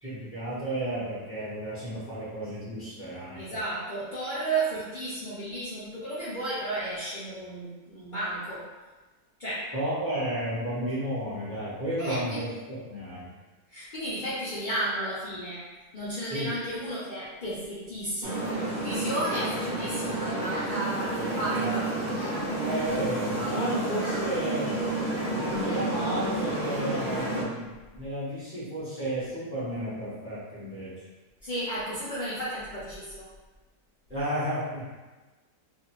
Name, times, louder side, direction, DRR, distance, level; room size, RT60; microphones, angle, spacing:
voice 1, 0.0-3.4 9.7-13.3 16.3-16.5 19.4-19.5 21.5-21.7 22.6-24.7 25.4-30.9 34.1-34.8, right 1 dB, 10° right, -10 dB, 0.8 m, -32 dB
voice 2, 3.4-8.6 9.4-9.7 12.0-12.4 13.7-15.6 15.9-21.9 31.4-33.3, right 1 dB, 80° left, -10 dB, 0.4 m, -33 dB
sound 1, 18.2-27.4, right 2 dB, 60° right, 0.8 m, -30 dB
2.6 x 2.4 x 3.0 m, 1.2 s
omnidirectional pair, 1.7 m